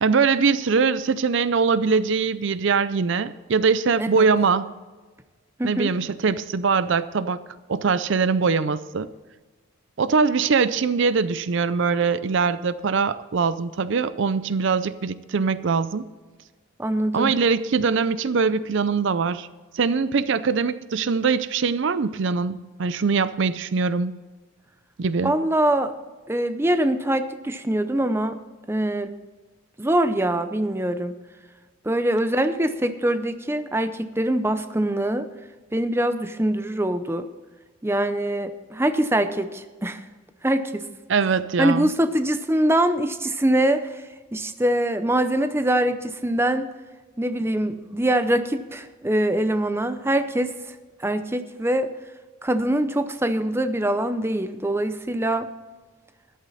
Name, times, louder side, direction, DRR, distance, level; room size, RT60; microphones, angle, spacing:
voice 1, 0.0-4.7 5.6-7.4 7.7-9.1 10.0-16.1 17.1-19.5 19.7-24.1 25.0-25.4 41.1-41.9, right 5 dB, 60° right, 15 dB, 0.5 m, -22 dB
voice 2, 5.6-5.9 16.8-17.3 25.2-25.9 26.3-28.4 28.7-29.1 29.8-31.1 31.8-35.3 35.7-37.3 37.8-40.0 40.4-40.9 41.6-44.0 44.3-46.7 47.2-50.5 51.0-51.9 52.4-55.5, right 1 dB, 10° right, 10 dB, 0.6 m, -23 dB
14.0 x 11.0 x 4.1 m, 1.3 s
head